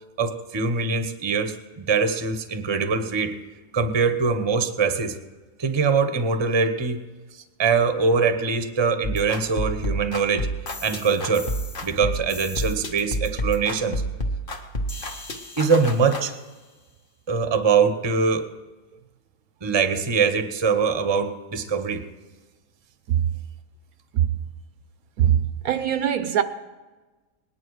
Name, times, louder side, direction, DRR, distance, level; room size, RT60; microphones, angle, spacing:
voice 1, 0.2-3.4 3.7-5.2 5.6-7.0 7.6-10.5 10.8-11.5 11.8-14.0 15.6-16.3 17.3-18.5 19.6-22.0, right 5 dB, 25° right, 0.7 m, -23 dB
sound 1, 9.0-16.2, equal, 35° left, 1.2 m, -30 dB
voice 2, 25.2-26.4, right 10 dB, 70° right, 1.0 m, -21 dB
19.5 x 10.0 x 4.8 m
omnidirectional pair, 1.7 m